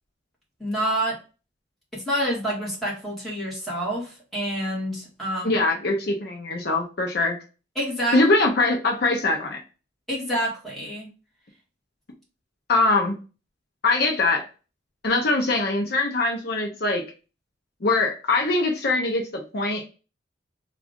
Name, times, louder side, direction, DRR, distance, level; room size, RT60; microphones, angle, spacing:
voice 1, 0.6-1.2 1.9-5.5 7.7-8.2 10.1-11.1, equal, ahead, -6 dB, 1.7 m, -27 dB
voice 2, 5.4-7.4 8.1-9.6 12.7-13.1 13.8-14.5 15.0-17.0 17.8-19.9, left 2 dB, 55° left, 2 dB, 0.6 m, -22 dB
3.5 x 2.5 x 3.5 m, 0.33 s
head